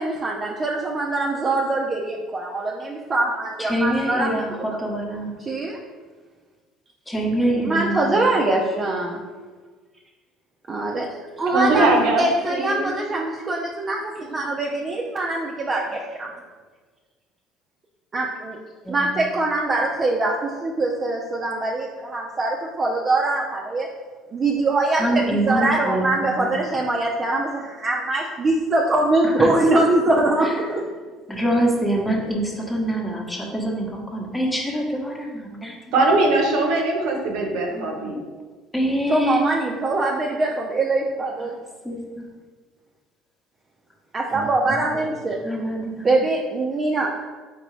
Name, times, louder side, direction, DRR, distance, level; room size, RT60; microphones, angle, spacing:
voice 1, 0.0-4.8 5.4-5.8 7.6-9.2 10.7-11.1 11.4-11.9 12.2-16.3 18.1-18.6 18.9-23.9 24.3-30.9 39.1-41.5 44.1-45.4 46.0-47.3, right 2 dB, 35° right, -1 dB, 0.5 m, -23 dB
voice 2, 3.6-5.3 7.1-8.3 18.8-19.2 24.9-26.6 29.2-29.5 30.4-30.6 31.3-35.8 37.7-38.1 38.7-39.4 41.8-42.2 45.4-46.2, right 1 dB, 15° left, 0 dB, 1.0 m, -25 dB
voice 3, 11.5-12.9 35.9-38.2, right 2 dB, 75° right, 1 dB, 0.8 m, -21 dB
3.9 x 3.6 x 3.2 m, 1.4 s
hypercardioid pair, 75°, 0 cm